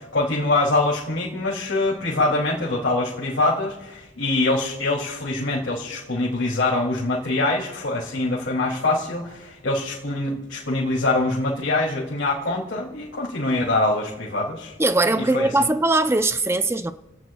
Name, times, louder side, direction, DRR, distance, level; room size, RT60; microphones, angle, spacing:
voice 1, 0.1-14.7 15.1-15.7, left 2 dB, 80° left, 2.8 m, -24 dB
voice 2, 14.8-16.9, right 2 dB, 15° right, 0.6 m, -20 dB
29.5 x 17.0 x 2.3 m
head